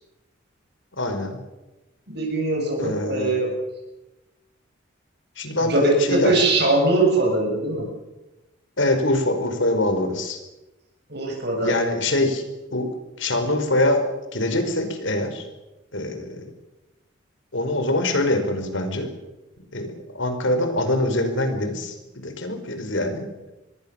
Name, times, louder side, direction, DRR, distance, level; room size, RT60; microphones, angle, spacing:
voice 1, 1.0-1.4 2.8-3.4 5.4-6.3 8.8-10.4 11.6-12.4 12.7-14.0 14.3-15.4 15.9-16.4 17.5-19.1 19.7-23.5, left 1 dB, 65° left, 7 dB, 5.2 m, -24 dB
voice 2, 2.1-3.5 5.6-7.9 11.1-11.7, right 2 dB, 50° right, 0 dB, 7.5 m, -21 dB
27.0 x 21.0 x 7.3 m, 1.0 s
head